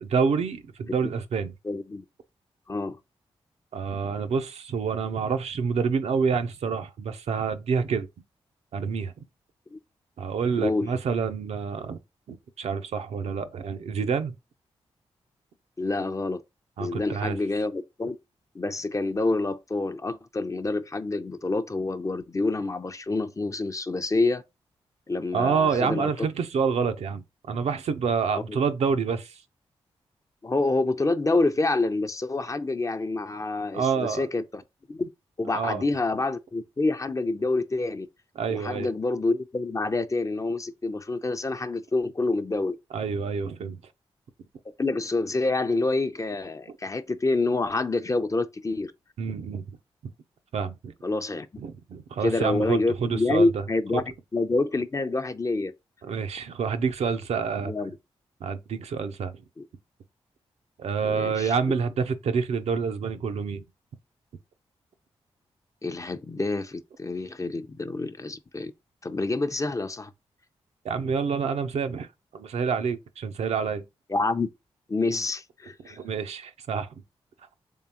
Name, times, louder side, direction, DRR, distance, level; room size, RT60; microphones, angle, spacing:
voice 1, 0.0-1.5 3.7-8.1 8.7-9.1 10.2-12.0 12.3-14.3 16.8-17.4 25.3-29.3 33.7-34.2 35.5-35.8 38.4-38.9 42.9-43.8 49.2-49.6 50.5-50.9 51.6-53.6 53.9-54.0 56.0-57.7 58.4-59.4 60.8-63.6 70.8-72.1 72.3-73.8 75.9-76.9, right 6 dB, 75° right, 0.5 m, -27 dB
voice 2, 1.6-2.0 2.7-3.0 9.7-9.8 10.6-10.9 15.8-16.4 16.8-18.2 18.5-24.4 25.1-26.1 28.3-28.6 30.4-34.6 34.9-35.1 35.4-38.1 38.5-42.8 44.8-48.9 51.0-51.5 52.2-54.0 54.3-55.7 57.6-57.9 59.6-59.7 61.0-61.5 65.8-68.7 69.0-70.1 74.1-74.5 74.9-76.0, left 3 dB, 30° left, 0.5 m, -27 dB
3.7 x 3.3 x 2.8 m
supercardioid pair, 45°, 11 cm